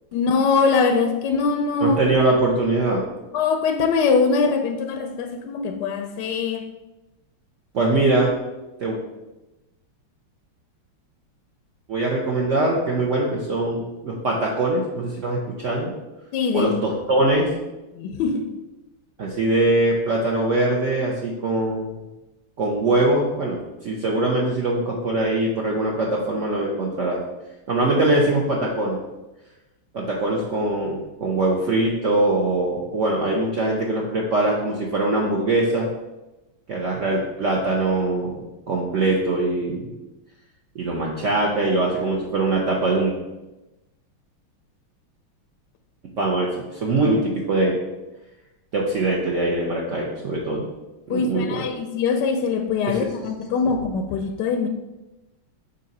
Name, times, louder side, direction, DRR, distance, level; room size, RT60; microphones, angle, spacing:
voice 1, 0.1-2.0 3.3-6.6 16.3-16.7 18.0-18.5 51.1-54.7, left 5 dB, 75° left, 5 dB, 1.0 m, -22 dB
voice 2, 1.8-3.0 7.7-8.3 8.8-9.0 11.9-15.9 16.5-17.5 19.2-22.0 22.6-23.6 23.8-27.2 27.7-29.0 29.9-35.9 36.7-39.9 40.7-43.1 46.2-47.8 48.7-50.7 51.1-51.7 52.9-53.0, right 2 dB, 75° right, -3 dB, 0.7 m, -22 dB
6.5 x 2.7 x 5.3 m, 1.0 s
omnidirectional pair, 2.3 m